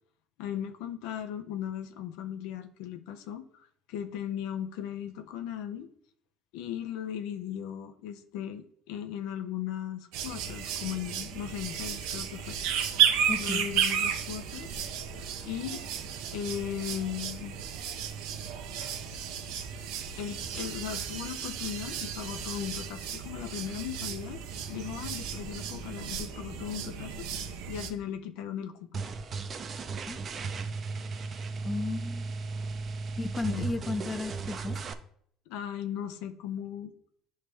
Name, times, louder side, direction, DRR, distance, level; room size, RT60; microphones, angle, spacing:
voice 1, 0.4-5.9 6.5-12.6 13.4-14.7 15.5-15.8 16.3-17.6 20.2-24.4 24.7-29.1 33.5-33.7 35.5-36.9, left 10 dB, 80° left, 8 dB, 0.6 m, -37 dB
sound 1, 10.1-27.9, right 8 dB, 80° right, 0.7 m, -33 dB
voice 2, 13.3-13.7 30.1-30.2 31.6-32.3 33.2-34.8, left 3 dB, 20° left, 12 dB, 0.5 m, -34 dB
sound 2, 28.9-34.9, right 4 dB, 35° right, 0.5 m, -36 dB
9.7 x 3.2 x 3.3 m, 0.64 s
cardioid pair, 115°, 0 cm